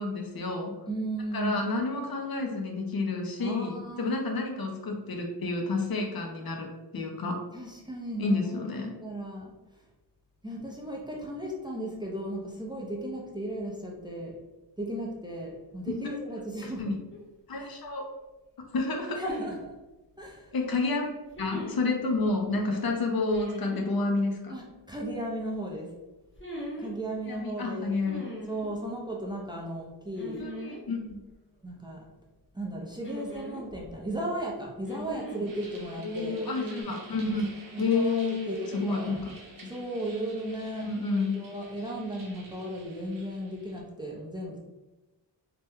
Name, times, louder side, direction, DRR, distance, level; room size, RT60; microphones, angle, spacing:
voice 1, 0.0-0.8 1.3-7.4 8.2-8.9 15.9-16.1 16.6-17.0 17.5-18.1 18.7-19.2 20.5-24.6 27.2-28.3 30.3-31.2 36.0-39.7 40.8-41.4, left 3 dB, 60° left, 2 dB, 0.6 m, -30 dB
voice 2, 0.9-1.6 3.4-4.4 7.5-9.5 10.4-14.4 14.8-16.9 17.6-17.7 19.2-19.7 20.2-20.5 24.5-25.9 26.8-28.0 28.5-30.4 31.6-32.0 32.5-36.4 37.7-39.2 39.7-44.6, right 1 dB, 10° right, -2 dB, 0.5 m, -36 dB
sound 1, 17.1-17.2 19.1-19.6 21.3-21.8 23.3-23.8 26.3-26.9 28.0-28.7 30.1-30.8 31.1-31.2 33.0-34.0 34.9-35.5 36.5-36.8, equal, 30° left, 0.9 m, -39 dB
sound 2, 35.4-43.8, right 2 dB, 50° right, 0.7 m, -50 dB
2.8 x 2.2 x 3.4 m, 1.0 s
wide cardioid pair, 105°, 41 cm